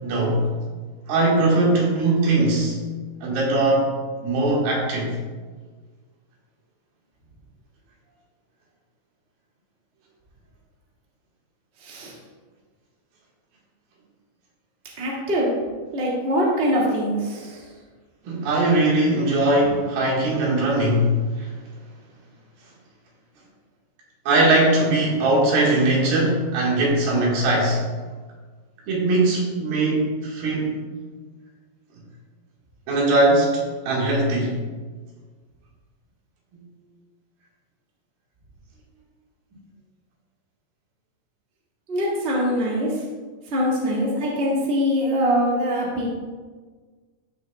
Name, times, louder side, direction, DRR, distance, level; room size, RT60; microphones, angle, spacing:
voice 1, 0.0-0.5 1.1-2.8 3.2-3.9 4.2-5.1 18.2-21.1 21.4-21.5 24.3-27.8 28.9-30.8 32.9-34.6, right 2 dB, 80° right, -3 dB, 3.6 m, -20 dB
voice 2, 11.8-12.1 15.0-15.5 15.9-17.6 41.9-42.9 43.5-46.1, equal, 25° right, -5 dB, 1.6 m, -23 dB
13.5 x 6.8 x 2.3 m, 1.5 s
omnidirectional pair, 4.1 m